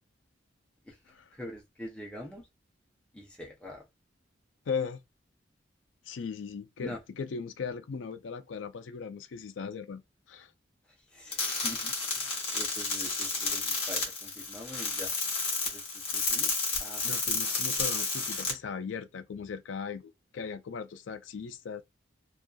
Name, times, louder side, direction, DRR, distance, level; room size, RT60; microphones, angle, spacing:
voice 1, 1.3-2.5 3.1-3.8 6.8-7.0 11.1-12.2 12.5-15.1 15.7-16.5 16.8-17.0, left 1 dB, 5° left, 0.5 m, -44 dB
voice 2, 4.7-5.0 6.1-10.0 10.3-10.5 17.0-21.8, left 5 dB, 80° left, 0.4 m, -38 dB
sound 1, 11.3-18.5, left 4 dB, 30° left, 1.0 m, -31 dB
2.5 x 2.3 x 2.3 m
head